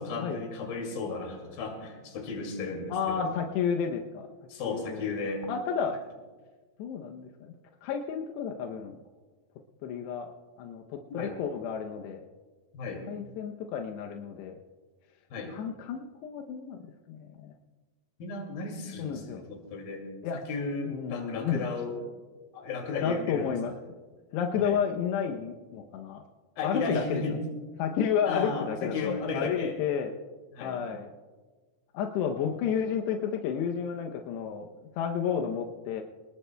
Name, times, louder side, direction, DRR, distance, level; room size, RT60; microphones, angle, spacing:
voice 1, 0.0-3.4 4.5-5.5 11.1-11.3 12.7-13.1 15.3-15.6 18.2-20.0 20.3-21.9 22.5-23.5 24.6-24.8 26.6-27.4 28.3-29.8 30.5-30.8, left 4 dB, 65° left, 2 dB, 3.9 m, -34 dB
voice 2, 2.9-4.3 4.7-5.0 5.5-6.0 6.8-7.5 7.8-9.0 9.8-10.3 10.6-12.2 13.1-14.6 15.5-16.8 17.1-17.5 19.0-19.4 20.2-20.4 20.9-21.7 23.0-23.7 24.3-26.2 26.6-27.4 27.8-30.1 30.6-31.1 31.9-34.7 35.0-36.0, left 7 dB, 85° left, 2 dB, 2.9 m, -31 dB
25.0 x 19.5 x 2.2 m, 1.4 s
omnidirectional pair, 4.7 m